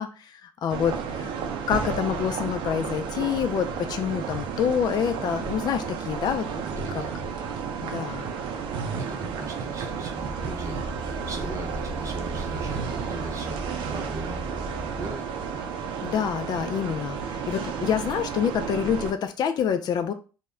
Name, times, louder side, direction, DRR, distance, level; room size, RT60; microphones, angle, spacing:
voice 1, 0.0-1.3 1.7-6.5 6.9-7.0 7.8-8.3 16.0-20.1, left 8 dB, 55° left, 8 dB, 0.3 m, -27 dB
sound 1, 0.7-19.1, right 6 dB, 70° right, 0.4 m, -32 dB
voice 2, 6.7-7.2 9.0-14.5 14.9-15.3, right 2 dB, 40° right, 3 dB, 0.7 m, -39 dB
sound 2, 10.2-15.1, right 1 dB, 5° left, 0.8 m, -38 dB
2.1 x 2.1 x 3.6 m, 0.35 s
cardioid pair, 90°, 9 cm